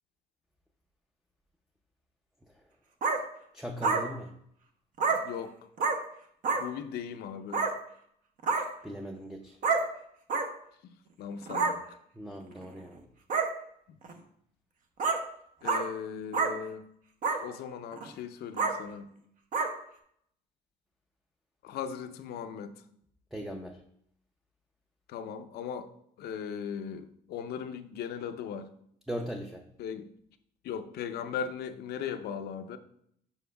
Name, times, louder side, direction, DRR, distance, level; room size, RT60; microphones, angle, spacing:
sound 1, 3.0-3.2 3.8-4.0 5.0-5.2 5.8-6.0 6.4-6.6 7.5-7.7 8.4-8.6 9.6-9.8 10.3-10.4 11.5-11.7 12.6-12.7 13.3-13.5 14.0-14.1 15.0-15.2 15.6-15.8 16.3-16.5 17.2-17.4 17.9-18.1 18.6-18.7 19.5-19.7, right 4 dB, 50° right, 0.9 m, -27 dB
voice 1, 3.5-4.3 8.8-9.6 12.1-13.0 23.3-23.8 29.1-29.7, equal, ahead, 2 dB, 0.5 m, -39 dB
voice 2, 5.1-5.6 6.6-7.7 10.8-12.0 15.6-16.8 17.4-19.1 21.6-22.7 25.1-25.9 26.2-28.7 29.8-30.1 30.6-32.8, left 7 dB, 70° left, 10 dB, 0.6 m, -38 dB
7.2 x 5.9 x 2.3 m, 0.69 s
cardioid pair, 110°, 17 cm